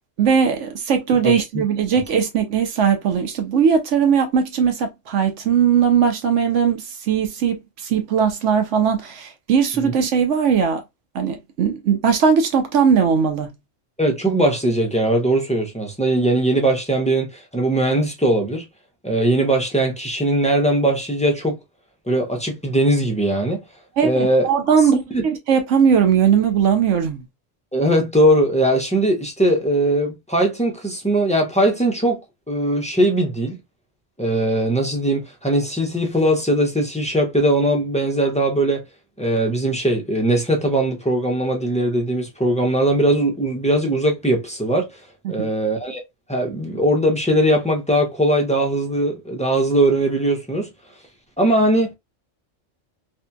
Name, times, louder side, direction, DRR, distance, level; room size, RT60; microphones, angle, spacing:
voice 1, 0.2-10.8 11.1-13.5 24.0-27.2 45.2-45.5, right 7 dB, 75° right, 0.9 m, -19 dB
voice 2, 14.0-18.6 19.0-21.6 22.1-23.6 24.0-24.5 25.1-25.2 27.7-32.2 32.5-33.6 34.2-38.8 39.2-44.9 45.3-46.0 46.3-50.7 51.4-51.9, right 1 dB, 10° left, 0.3 m, -20 dB
2.7 x 2.6 x 2.2 m
omnidirectional pair, 1.3 m